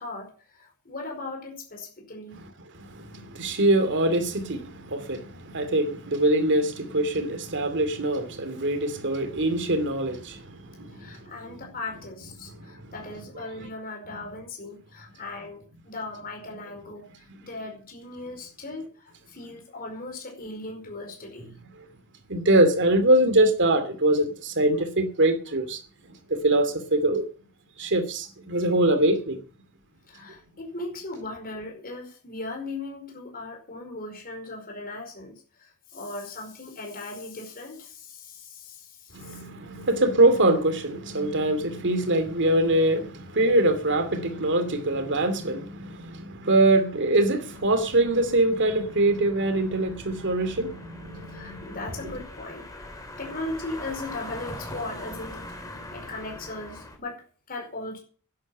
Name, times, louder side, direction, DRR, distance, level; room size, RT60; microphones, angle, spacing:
voice 1, 0.0-2.4 10.9-21.5 30.1-39.4 51.3-52.7 53.2-55.5 55.9-58.0, left 2 dB, 40° left, 4.9 m, -38 dB
voice 2, 2.8-11.2 11.5-11.6 12.5-12.9 22.3-25.8 26.1-27.3 27.8-29.4 39.1-51.8 52.0-52.1, right 1 dB, 55° right, 2.5 m, -23 dB
sound 1, 47.5-57.0, left 1 dB, 15° left, 3.2 m, -42 dB
11.0 x 10.5 x 7.5 m
head